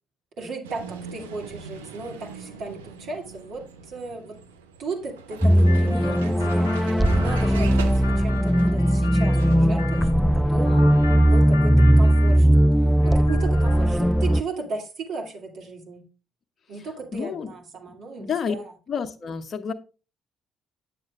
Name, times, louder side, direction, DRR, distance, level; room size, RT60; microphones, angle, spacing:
voice 1, 0.4-4.4 4.8-6.8 7.1-10.9 11.3-16.0 16.7-18.7, right 3 dB, 65° right, -1 dB, 2.6 m, -36 dB
Vehicle, 0.6-9.7, right 6 dB, 85° right, 0.6 m, -41 dB
sound 1, 5.4-14.4, equal, 5° left, 0.3 m, -18 dB
sound 2, 5.7-10.1 10.7-12.7 13.0-14.0, left 6 dB, 90° left, 0.7 m, -39 dB
voice 2, 17.1-17.5 18.2-18.6 18.9-19.7, left 6 dB, 45° left, 8 dB, 0.9 m, -29 dB
8.8 x 7.5 x 2.5 m, 0.33 s
hypercardioid pair, 50°, 0 cm